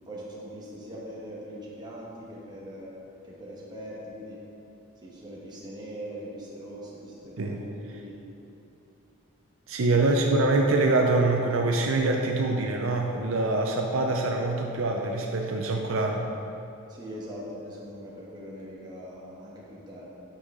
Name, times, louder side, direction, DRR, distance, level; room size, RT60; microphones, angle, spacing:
voice 1, 0.0-2.9 3.2-4.4 5.0-8.1 10.0-10.3 16.9-20.1, equal, 20° right, -6 dB, 1.3 m, -41 dB
voice 2, 9.7-16.3, right 2 dB, 70° right, 1 dB, 0.6 m, -24 dB
9.0 x 5.6 x 3.8 m, 2.8 s
head